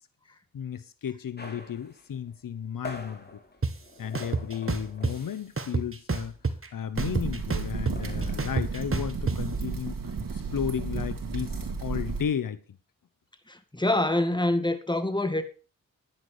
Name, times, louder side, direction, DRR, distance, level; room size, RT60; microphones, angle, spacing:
voice 1, 0.5-3.4 4.0-6.3 6.7-12.6, left 8 dB, 80° left, 1.0 m, -34 dB
sound 1, 1.4-5.6 5.9-6.1 6.4-8.3, left 2 dB, 30° left, 3.2 m, -45 dB
sound 2, 3.6-3.7 4.1-5.1 5.6-6.7 7.0-9.4, right 4 dB, 40° right, 1.9 m, -28 dB
sound 3, 6.9-12.2, right 4 dB, 80° right, 3.0 m, -33 dB
voice 2, 13.5-15.4, left 1 dB, 15° left, 2.1 m, -26 dB
11.0 x 10.5 x 4.9 m
cardioid pair, 55°, 33 cm